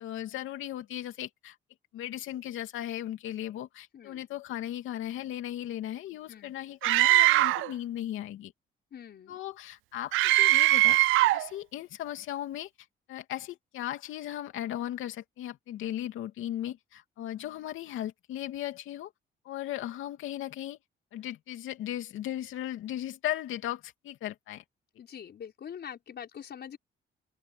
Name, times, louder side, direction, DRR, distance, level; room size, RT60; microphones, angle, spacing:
voice 1, 0.0-1.5 1.9-8.5 9.3-11.0 11.3-12.7 13.1-19.1 19.4-20.8 21.1-24.6, left 12 dB, 85° left, 2.8 m, -37 dB
voice 2, 3.9-4.3 6.3-6.5 8.9-9.4 25.0-26.8, left 8 dB, 55° left, 5.8 m, -44 dB
Screaming, 6.8-7.7 10.1-11.5, right 18 dB, 85° right, 0.4 m, -21 dB
open air
cardioid pair, 90°, 20 cm